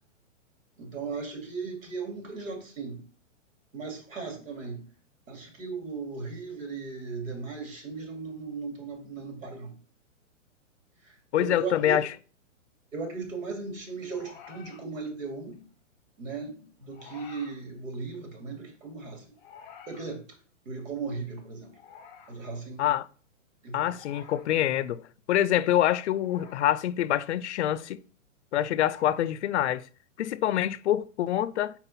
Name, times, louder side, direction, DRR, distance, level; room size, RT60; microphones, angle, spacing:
voice 1, 0.8-3.0 3.7-4.8 5.3-9.7 11.0-12.0 12.9-15.6 16.2-19.3 19.9-20.4 20.6-21.8 22.3-22.9 23.6-23.9, right 4 dB, 85° right, 2.5 m, -37 dB
voice 2, 11.3-12.1 22.8-23.1 23.7-28.0 28.5-29.8 30.2-31.7, left 12 dB, 60° left, 0.5 m, -26 dB
sound 1, 11.7-11.9 14.1-14.8 16.9-17.6 19.4-20.1 21.7-22.4 23.9-24.5 26.1-26.7 28.7-29.3, left 6 dB, 15° left, 0.8 m, -50 dB
5.7 x 4.3 x 4.1 m
hypercardioid pair, 160°, 38 cm